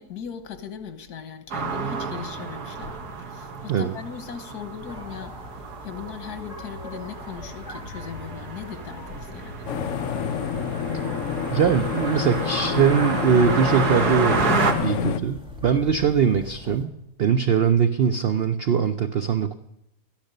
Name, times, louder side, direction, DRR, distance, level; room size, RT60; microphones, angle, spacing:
voice 1, 0.0-9.6, left 7 dB, 80° left, 9 dB, 1.8 m, -38 dB
sound 1, 1.5-14.7, right 4 dB, 85° right, 2.0 m, -31 dB
sound 2, 4.9-16.9, left 1 dB, 5° right, 2.1 m, -41 dB
sound 3, 9.7-15.2, left 7 dB, 65° left, 0.9 m, -27 dB
voice 2, 11.5-16.9 17.2-19.5, right 7 dB, 60° right, 10 dB, 0.6 m, -21 dB
13.0 x 10.5 x 6.6 m, 0.83 s
omnidirectional pair, 1.6 m